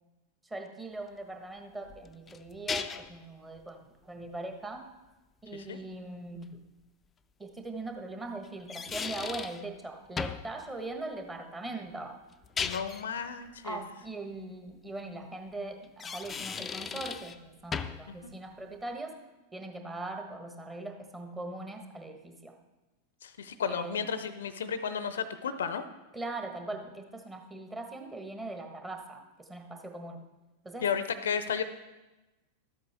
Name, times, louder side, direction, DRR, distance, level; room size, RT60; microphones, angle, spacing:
voice 1, 0.4-4.8 5.4-6.6 7.4-12.2 13.6-19.1 19.5-22.6 23.7-24.0 26.1-30.2 30.6-30.9, right 2 dB, 10° right, 4 dB, 1.3 m, -40 dB
sound 1, 1.9-3.2 6.4-6.5 8.4-9.6 10.2-10.5 12.3-13.1 15.8-17.4 17.7-18.1, left 6 dB, 20° left, 0.4 m, -36 dB
voice 2, 12.6-13.8 18.1-18.3 23.2-25.9 30.8-31.6, left 7 dB, 65° left, 12 dB, 0.6 m, -33 dB
12.5 x 8.2 x 3.5 m, 1.1 s
figure-of-eight pair, 90°, 0 cm